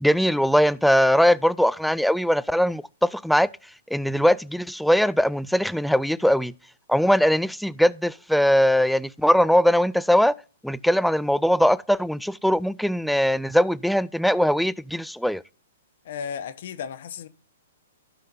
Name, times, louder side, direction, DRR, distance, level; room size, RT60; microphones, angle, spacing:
voice 1, 0.0-3.5 3.9-6.5 6.9-10.3 10.6-15.4, equal, ahead, 0.3 m, -21 dB
voice 2, 16.0-17.3, left 7 dB, 60° left, 1.0 m, -34 dB
15.5 x 5.7 x 2.6 m
hypercardioid pair, 130°, 0 cm